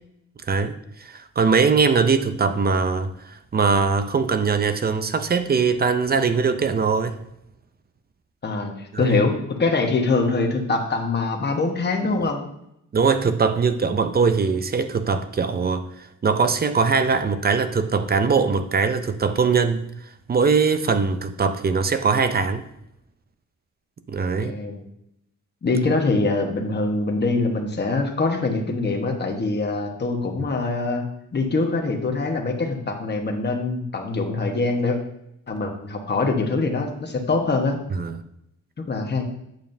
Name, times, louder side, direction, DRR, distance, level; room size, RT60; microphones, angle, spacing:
voice 1, 0.5-7.2 8.9-9.2 12.9-19.9 20.3-22.6 24.1-24.5 37.9-38.2, right 5 dB, 30° right, 0.4 m, -21 dB
voice 2, 8.4-12.4 24.4-24.8 25.6-31.0 31.3-35.0 35.5-37.8 38.9-39.2, left 3 dB, 35° left, 1.1 m, -23 dB
9.0 x 7.0 x 2.6 m
wide cardioid pair, 165°, 31 cm